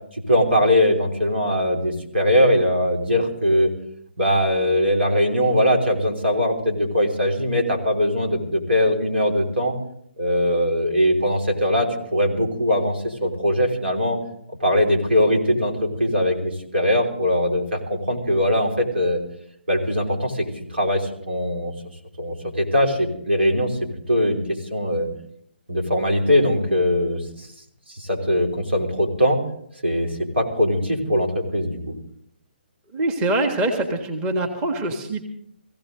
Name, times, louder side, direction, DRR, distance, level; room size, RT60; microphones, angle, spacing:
voice 1, 0.1-3.7 4.2-9.7 10.2-14.2 14.6-19.2 19.7-21.7 22.2-23.8 24.1-25.1 25.7-27.5 27.9-29.4 29.8-31.8, equal, 80° right, 2 dB, 3.4 m, -21 dB
voice 2, 32.9-35.3, right 2 dB, 20° right, 4 dB, 1.5 m, -24 dB
18.5 x 16.0 x 3.8 m, 0.68 s
figure-of-eight pair, 140°, 6 cm